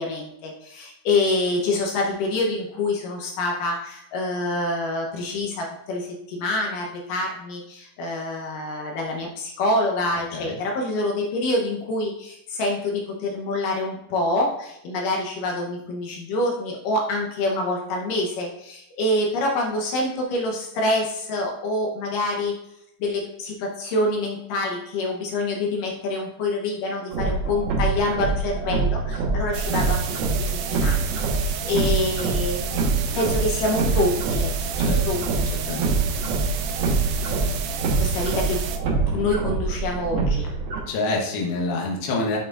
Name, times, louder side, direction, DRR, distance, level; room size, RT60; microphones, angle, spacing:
voice 1, 0.0-22.5 23.0-30.0 30.3-36.0 38.0-38.6 39.1-40.5, left 2 dB, 70° left, 0 dB, 2.3 m, -26 dB
sound 1, 27.1-40.8, right 3 dB, 60° right, 1.6 m, -25 dB
sound 2, 29.5-38.8, right 9 dB, 80° right, 2.3 m, -33 dB
voice 2, 40.9-42.4, left 3 dB, 90° left, 0 dB, 3.1 m, -26 dB
9.0 x 5.8 x 2.4 m, 0.78 s
omnidirectional pair, 4.4 m